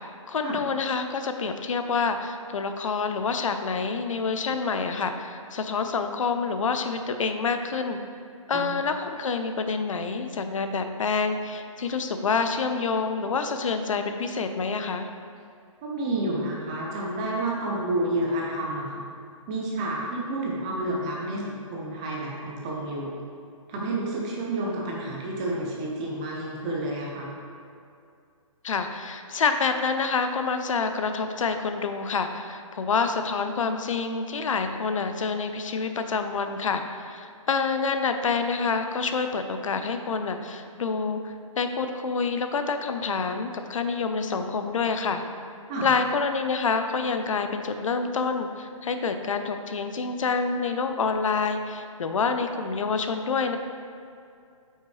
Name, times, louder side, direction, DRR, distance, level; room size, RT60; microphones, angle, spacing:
voice 1, 0.3-8.0 8.5-15.1 28.6-45.2 45.8-53.6, left 5 dB, 70° left, 7 dB, 0.6 m, -27 dB
voice 2, 8.5-8.8 15.8-19.0 19.5-23.2 23.7-27.3 45.7-45.9, right 1 dB, 10° right, -3 dB, 0.4 m, -30 dB
8.4 x 5.6 x 3.2 m, 2.4 s
hypercardioid pair, 170°, 17 cm